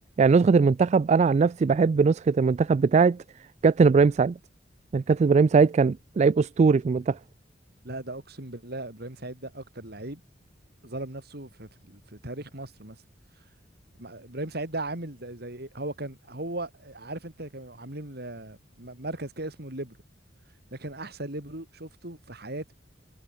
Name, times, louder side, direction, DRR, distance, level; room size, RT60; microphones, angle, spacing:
voice 1, 0.2-3.2 3.6-4.3 4.9-7.2, right 5 dB, 40° right, 0.3 m, -20 dB
voice 2, 7.8-10.2 10.8-13.0 14.0-20.0 20.7-22.7, right 2 dB, 60° right, 4.4 m, -37 dB
head